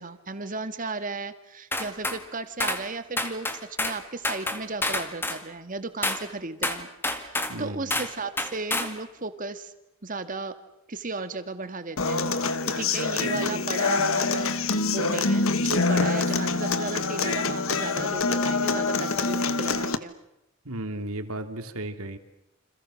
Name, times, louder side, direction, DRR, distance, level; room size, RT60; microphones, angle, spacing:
voice 1, 0.0-6.9 7.2-9.7 10.0-10.5 10.9-20.1, right 3 dB, 40° right, 10 dB, 1.9 m, -35 dB
sound 1, 1.7-2.2 2.6-2.8 3.2-4.0 4.2-5.4 6.0-6.2 6.6-7.6 7.9-8.1 8.4-8.9, left 2 dB, 10° left, 2.0 m, -28 dB
voice 2, 7.5-8.0 20.6-22.2, right 1 dB, 80° right, 7 dB, 2.9 m, -34 dB
Human voice / Acoustic guitar, 12.0-20.0, left 4 dB, 70° left, 1.5 m, -25 dB
29.0 x 27.0 x 6.5 m, 0.87 s
head